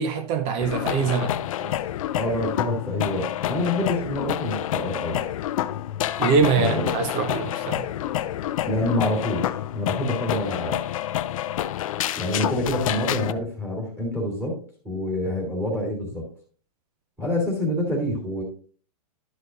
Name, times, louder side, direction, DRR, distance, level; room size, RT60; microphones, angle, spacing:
voice 1, 0.0-1.4 6.2-7.9, right 5 dB, 30° right, 0.7 m, -23 dB
sound 1, 0.6-13.3, left 12 dB, 55° left, 0.5 m, -28 dB
voice 2, 2.1-5.2 6.5-7.0 8.6-10.8 12.2-14.6 14.8-16.3 17.2-18.4, left 1 dB, 10° right, 2.9 m, -27 dB
12.0 x 6.3 x 2.5 m
hypercardioid pair, 145°, 20 cm